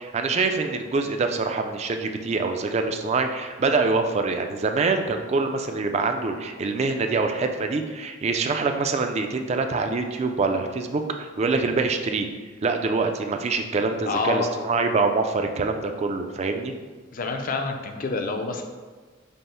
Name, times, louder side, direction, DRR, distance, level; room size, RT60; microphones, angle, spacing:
voice 1, 0.0-12.3 12.6-16.7, right 4 dB, 35° right, 6 dB, 0.3 m, -25 dB
voice 2, 14.1-14.5 17.1-18.6, left 4 dB, 45° left, 5 dB, 0.4 m, -27 dB
5.3 x 2.0 x 4.3 m, 1.4 s
head